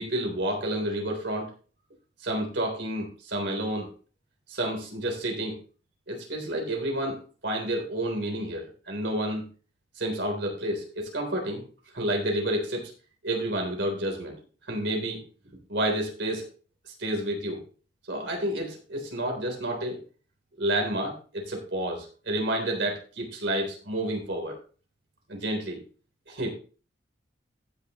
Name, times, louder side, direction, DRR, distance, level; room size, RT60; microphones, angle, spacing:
voice 1, 0.0-1.5 2.2-3.9 4.5-5.6 6.1-9.4 10.0-11.6 11.9-12.9 13.2-14.4 14.7-15.2 15.7-16.5 16.9-17.6 18.1-20.0 20.6-24.6 25.3-25.8 26.3-26.5, right 1 dB, 90° right, 1 dB, 3.5 m, -30 dB
15.0 x 6.8 x 3.1 m, 0.37 s
head